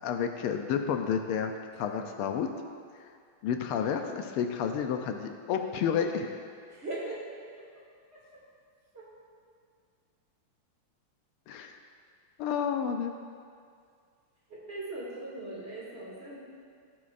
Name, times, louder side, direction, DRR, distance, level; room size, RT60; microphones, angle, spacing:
voice 1, 0.0-2.5 3.4-6.4 11.5-11.8 12.4-13.1, left 7 dB, 80° left, 5 dB, 1.5 m, -30 dB
voice 2, 6.7-7.2 8.1-8.2 8.9-9.1 14.5-16.4, right 2 dB, 30° right, -7 dB, 2.5 m, -39 dB
16.0 x 8.6 x 2.5 m, 2.2 s
omnidirectional pair, 2.4 m